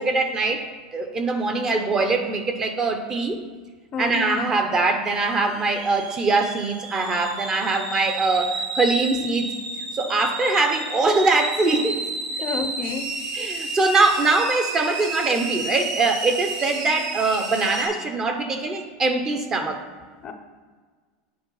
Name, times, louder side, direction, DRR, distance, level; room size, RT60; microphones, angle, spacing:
voice 1, 0.0-3.4 4.0-9.5 10.0-12.1 13.3-19.8, right 3 dB, 20° right, 6 dB, 0.6 m, -22 dB
voice 2, 3.9-4.4 12.4-13.1 20.2-20.3, left 5 dB, 25° left, 7 dB, 0.5 m, -30 dB
sound 1, 5.0-17.9, right 3 dB, 50° right, 2.0 m, -31 dB
8.6 x 4.4 x 5.5 m, 1.5 s
supercardioid pair, 160°, 3 cm